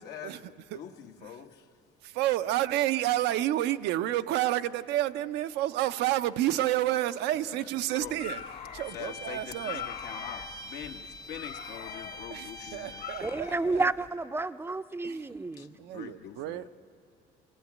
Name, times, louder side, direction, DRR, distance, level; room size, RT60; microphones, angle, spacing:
voice 1, 0.0-1.7 7.4-8.2 8.9-13.2 15.6-16.7, left 9 dB, 90° left, 1.3 m, -44 dB
voice 2, 2.0-8.4 8.7-9.9 12.3-13.8 15.0-15.2 15.8-16.6, right 14 dB, 85° right, 0.6 m, -29 dB
sound 1, 8.0-14.1, left 8 dB, 65° left, 1.5 m, -43 dB
Bowed string instrument, 8.8-13.4, left 1 dB, 20° left, 0.7 m, -44 dB
voice 3, 13.2-15.8, right 3 dB, 15° right, 0.5 m, -31 dB
24.0 x 18.0 x 9.3 m
cardioid pair, 110°, 17 cm